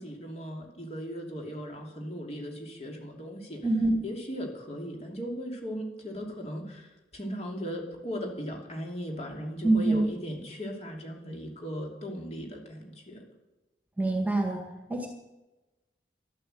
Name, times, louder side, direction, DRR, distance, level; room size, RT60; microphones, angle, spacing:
voice 1, 0.0-3.6 4.0-13.2, equal, 35° left, 1 dB, 2.9 m, -38 dB
voice 2, 3.6-4.0 9.6-10.0 14.0-14.6 14.9-15.1, right 2 dB, 10° right, 1 dB, 1.9 m, -24 dB
12.0 x 12.0 x 7.8 m, 1.0 s
head